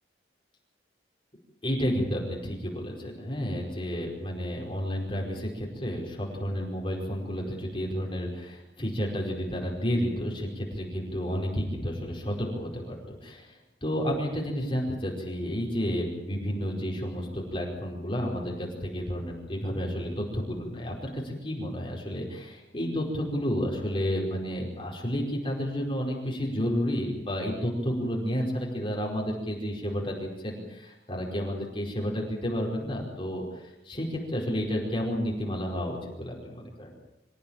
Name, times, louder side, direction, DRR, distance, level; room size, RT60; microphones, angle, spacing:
voice 1, 1.6-36.9, equal, 30° left, -2 dB, 5.0 m, -31 dB
26.0 x 15.5 x 9.0 m, 0.93 s
head